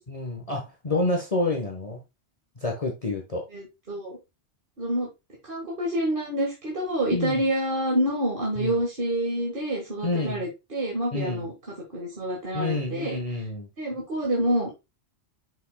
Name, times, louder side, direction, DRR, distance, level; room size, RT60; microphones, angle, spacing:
voice 1, 0.1-2.0 2.6-3.4 7.1-7.4 8.6-8.8 10.0-10.4 11.1-11.5 12.5-13.7, left 2 dB, 30° left, 1.2 m, -28 dB
voice 2, 3.5-4.2 4.8-5.1 5.5-11.5 11.9-13.2 13.8-14.7, right 1 dB, 50° right, 1.8 m, -27 dB
7.1 x 6.2 x 2.2 m
omnidirectional pair, 1.2 m